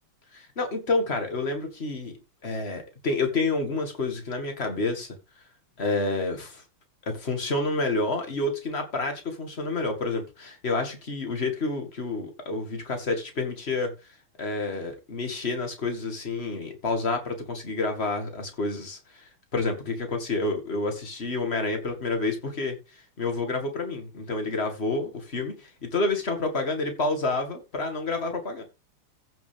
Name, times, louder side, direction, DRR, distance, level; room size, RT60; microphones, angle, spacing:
voice 1, 0.3-2.1 2.4-5.1 5.8-6.6 7.1-13.9 14.4-28.6, left 3 dB, 30° left, 2.1 m, -29 dB
14.5 x 6.4 x 3.5 m
omnidirectional pair, 2.4 m